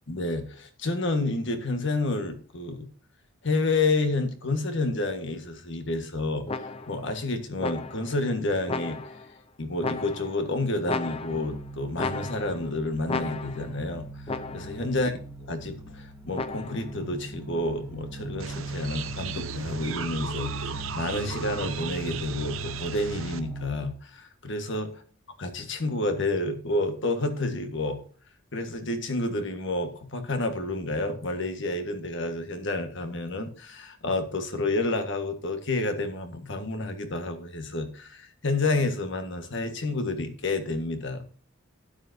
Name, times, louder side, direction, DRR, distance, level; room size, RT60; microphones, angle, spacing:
voice 1, 0.1-2.9 3.4-6.4 6.9-9.0 9.6-14.1 14.5-15.1 15.5-24.9 25.4-28.0 28.5-41.2, left 2 dB, 60° left, 7 dB, 1.6 m, -29 dB
sound 1, 6.5-7.1 7.6-8.2 8.7-9.3 9.8-10.5 10.8-11.6 12.0-12.7 13.1-13.8 14.3-14.9 16.3-16.9, left 3 dB, 30° left, 0.7 m, -34 dB
sound 2, 11.3-23.7, right 2 dB, 5° right, 1.5 m, -40 dB
sound 3, 18.4-23.4, right 6 dB, 75° right, 0.9 m, -36 dB
12.5 x 9.3 x 2.8 m, 0.42 s
head